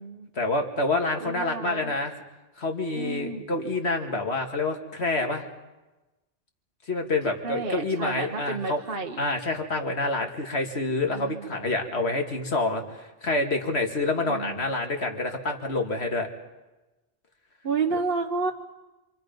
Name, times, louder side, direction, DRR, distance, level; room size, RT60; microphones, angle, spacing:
voice 1, 0.4-2.1 2.6-5.5 6.9-8.8 9.2-16.3, left 2 dB, 70° left, 3 dB, 2.4 m, -27 dB
voice 2, 1.2-1.9 2.9-3.4 7.2-9.2 11.1-11.5 14.2-14.7 17.6-18.5, right 4 dB, 55° right, 3 dB, 1.2 m, -31 dB
27.5 x 25.5 x 5.3 m, 1.1 s
omnidirectional pair, 1.2 m